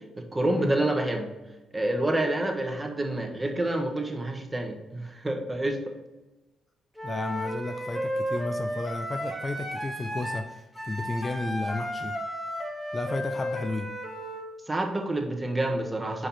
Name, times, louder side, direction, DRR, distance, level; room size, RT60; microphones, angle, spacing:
voice 1, 0.3-1.3 1.7-5.9 14.7-16.3, right 1 dB, 15° right, 3 dB, 1.2 m, -28 dB
voice 2, 7.0-10.5 10.8-12.2 12.9-13.9, left 2 dB, 25° left, 7 dB, 0.5 m, -32 dB
Wind instrument woodwind instrument, 7.0-14.4, equal, 5° left, 1.3 m, -33 dB
5.9 x 4.9 x 4.2 m, 1.1 s
cardioid pair, 90°, 0 cm